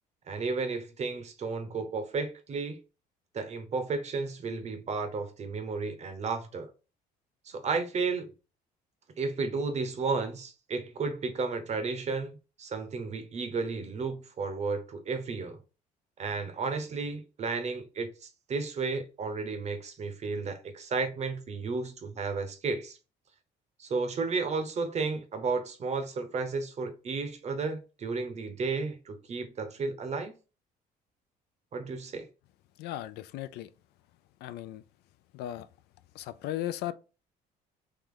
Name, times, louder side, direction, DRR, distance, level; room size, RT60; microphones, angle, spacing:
voice 1, 0.3-2.8 3.3-6.7 7.4-8.3 9.2-15.6 16.2-23.0 23.8-30.4 31.7-32.3, right 4 dB, 40° right, 0.8 m, -33 dB
voice 2, 32.8-33.7 34.4-34.8 35.3-35.7 36.1-36.9, left 13 dB, 80° left, 0.4 m, -36 dB
3.3 x 3.0 x 3.7 m
cardioid pair, 110°, 17 cm